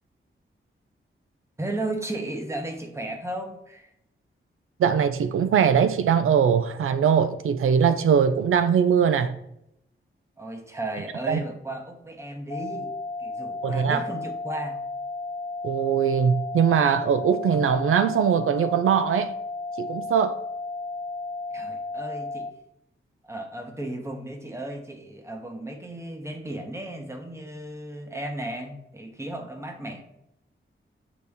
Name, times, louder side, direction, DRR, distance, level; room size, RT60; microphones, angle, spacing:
voice 1, 1.6-3.9 10.4-12.9 13.2-14.8 21.5-22.5 23.2-30.0, right 1 dB, 15° right, 0.9 m, -35 dB
voice 2, 4.8-9.4 11.3-11.4 13.6-14.0 15.6-19.3 19.8-20.4, right 7 dB, 90° right, 0.4 m, -21 dB
sound 1, 12.5-22.5, left 3 dB, 30° left, 0.4 m, -34 dB
8.1 x 4.2 x 3.5 m
wide cardioid pair, 135°, 21 cm